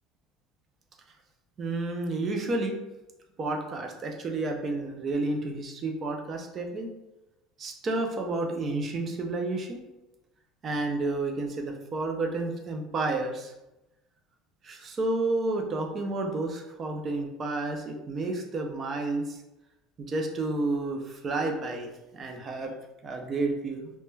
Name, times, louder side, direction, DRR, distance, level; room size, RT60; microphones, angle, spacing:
voice 1, 1.6-2.8 3.4-6.9 7.6-9.8 10.6-13.5 14.6-19.4 20.0-22.7 23.0-23.9, right 2 dB, 25° right, 3 dB, 0.3 m, -31 dB
2.1 x 2.1 x 3.1 m, 0.96 s
cardioid pair, 165°, 0 cm